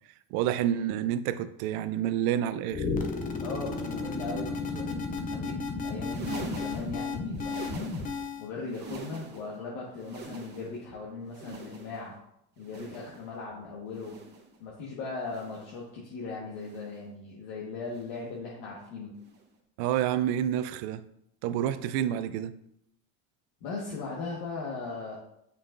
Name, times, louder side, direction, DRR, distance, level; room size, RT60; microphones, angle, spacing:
voice 1, 0.3-2.9 19.8-21.0 21.4-22.5, right 10 dB, 65° right, 0.5 m, -28 dB
sound 1, 2.7-8.5, left 4 dB, 20° left, 0.4 m, -33 dB
voice 2, 3.4-12.2 12.6-14.1 14.6-19.1 23.6-25.2, left 4 dB, 70° left, 1.4 m, -38 dB
sound 2, 6.0-8.3 8.6-9.6 9.9-10.9 11.3-12.1 12.6-13.3 13.9-14.6 15.2-15.8 16.5-17.1 17.9-18.3 19.2-19.5 20.5-20.7 21.9-22.0, right 3 dB, 25° right, 0.9 m, -45 dB
7.3 x 5.6 x 2.5 m
cardioid pair, 145°, 41 cm